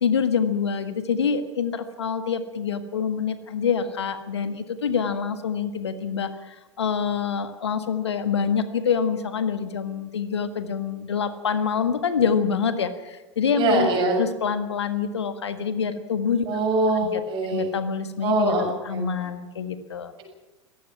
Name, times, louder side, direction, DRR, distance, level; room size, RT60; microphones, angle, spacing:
voice 1, 0.0-13.9 14.2-16.5 16.9-17.2 17.5-18.5 18.8-20.1, left 6 dB, 70° left, 10 dB, 1.6 m, -26 dB
voice 2, 13.5-14.2 16.5-17.7 18.2-19.3, right 2 dB, 35° right, 2 dB, 7.5 m, -23 dB
23.5 x 18.5 x 6.0 m, 1.1 s
figure-of-eight pair, 90°, 15 cm